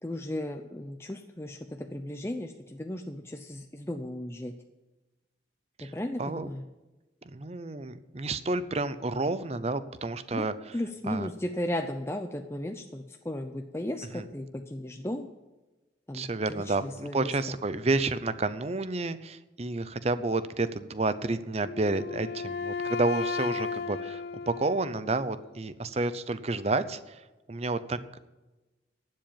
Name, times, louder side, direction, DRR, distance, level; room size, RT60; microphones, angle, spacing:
voice 1, 0.0-4.5 5.8-6.6 10.3-10.4 10.7-15.3 16.1-17.4, left 1 dB, 15° left, 4 dB, 0.6 m, -35 dB
voice 2, 7.3-10.5 11.1-11.3 14.1-14.2 16.1-28.2, right 3 dB, 35° right, 13 dB, 0.6 m, -30 dB
Wind instrument woodwind instrument, 21.6-25.5, left 5 dB, 60° left, 0.4 m, -35 dB
12.0 x 7.6 x 9.0 m, 1.1 s
head